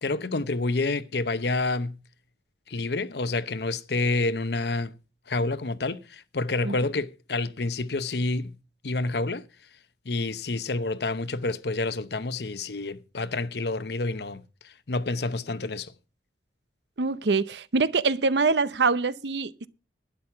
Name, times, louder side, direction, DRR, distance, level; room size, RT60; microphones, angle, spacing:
voice 1, 0.0-2.0 2.7-4.9 5.3-8.5 8.8-9.4 10.0-15.9, left 3 dB, 70° left, 0.8 m, -28 dB
voice 2, 17.0-19.7, right 4 dB, 80° right, 0.8 m, -24 dB
12.0 x 10.0 x 5.8 m
head